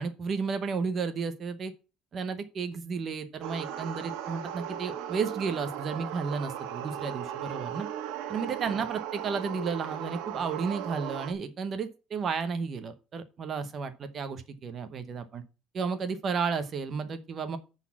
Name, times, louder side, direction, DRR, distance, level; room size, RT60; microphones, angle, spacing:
voice 1, 0.0-1.7 2.1-7.9 8.3-15.4 15.7-17.6, right 5 dB, 30° right, 10 dB, 0.9 m, -33 dB
sound 1, 3.4-11.3, right 10 dB, 80° right, 1.4 m, -37 dB
10.5 x 4.1 x 7.3 m, 0.32 s
cardioid pair, 175°, 0 cm